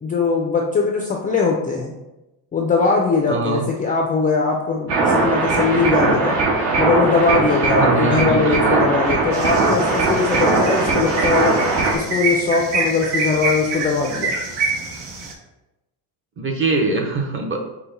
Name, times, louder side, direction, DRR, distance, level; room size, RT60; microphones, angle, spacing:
voice 1, 0.0-1.9 2.5-6.4 6.8-11.6 11.9-14.4, left 4 dB, 20° left, 0 dB, 0.3 m, -20 dB
voice 2, 3.3-3.7 7.8-8.8 16.4-17.6, right 2 dB, 30° right, 2 dB, 0.7 m, -22 dB
sound 1, 4.9-12.0, right 3 dB, 70° right, 1.5 m, -19 dB
sound 2, 9.3-15.3, right 3 dB, 85° right, 1.0 m, -26 dB
5.7 x 2.2 x 3.8 m, 0.97 s
cardioid pair, 145°, 44 cm